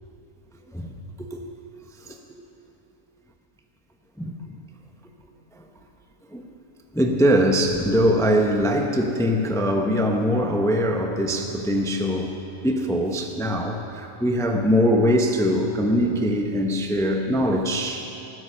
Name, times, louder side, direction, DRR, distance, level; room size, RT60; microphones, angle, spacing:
voice 1, 4.2-4.6 5.6-5.7 6.3-6.5 6.9-12.4 12.6-18.1, equal, 5° left, 3 dB, 0.7 m, -22 dB
15.0 x 12.5 x 5.6 m, 3.0 s
omnidirectional pair, 1.3 m